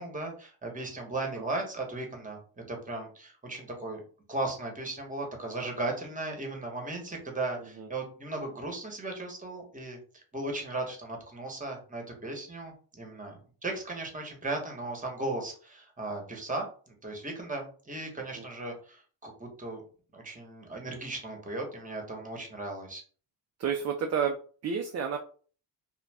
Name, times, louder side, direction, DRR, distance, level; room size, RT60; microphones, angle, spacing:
voice 1, 0.0-4.0 4.3-10.0 10.3-19.8 20.1-23.0, right 2 dB, 20° right, 2 dB, 1.0 m, -36 dB
voice 2, 23.6-25.2, right 7 dB, 40° right, 4 dB, 0.4 m, -30 dB
2.4 x 2.2 x 3.3 m, 0.41 s
cardioid pair, 80°, 43 cm